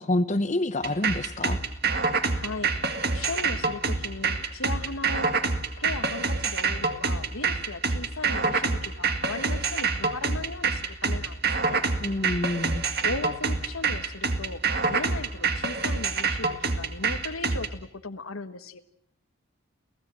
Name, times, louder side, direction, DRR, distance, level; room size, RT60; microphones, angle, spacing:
voice 1, 0.0-1.6 12.0-12.8, left 1 dB, 35° left, 9 dB, 0.8 m, -27 dB
sound 1, 0.8-17.7, right 4 dB, 45° right, 2.0 m, -26 dB
voice 2, 2.4-5.3 5.8-11.8 13.0-18.8, left 3 dB, 80° left, 9 dB, 1.5 m, -37 dB
29.5 x 16.5 x 7.7 m, 0.68 s
head